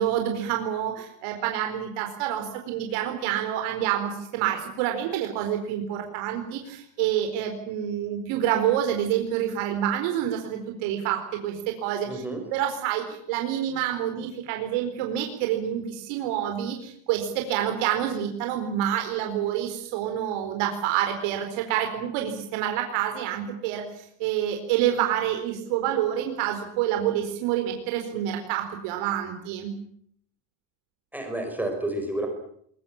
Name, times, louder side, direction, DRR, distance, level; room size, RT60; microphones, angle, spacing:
voice 1, 0.0-12.2 12.5-23.8 24.2-29.7, right 10 dB, 80° right, 4 dB, 4.6 m, -27 dB
voice 2, 12.0-12.4 31.1-32.3, right 1 dB, 5° right, 3 dB, 5.0 m, -30 dB
22.5 x 22.5 x 8.8 m, 0.68 s
cardioid pair, 170°, 49 cm